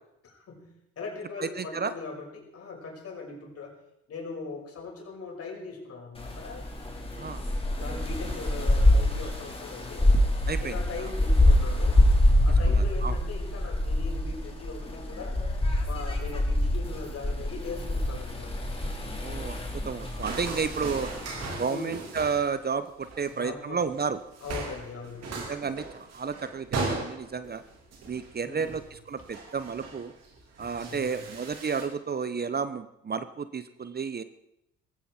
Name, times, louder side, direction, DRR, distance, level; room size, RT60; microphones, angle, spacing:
voice 1, 0.2-0.7 1.0-3.7 4.1-6.7 7.7-10.1 10.6-12.0 12.4-15.4 15.8-18.7 21.7-22.1 23.3-23.9 24.4-25.5 28.4-28.8 30.8-31.2, left 4 dB, 50° left, 1 dB, 5.7 m, -40 dB
voice 2, 1.4-1.9 7.2-7.5 10.5-11.1 12.7-13.2 19.1-21.1 21.6-24.2 25.3-27.6 28.0-30.1 30.6-34.2, right 5 dB, 30° right, 12 dB, 1.1 m, -32 dB
sound 1, 6.2-21.5, left 1 dB, 20° left, 4.3 m, -25 dB
sound 2, 20.0-22.6 22.8-23.3 23.8-24.0 24.3-31.8, right 3 dB, 60° right, 4.1 m, -38 dB
18.5 x 15.5 x 4.5 m, 0.80 s
hypercardioid pair, 50°, 30 cm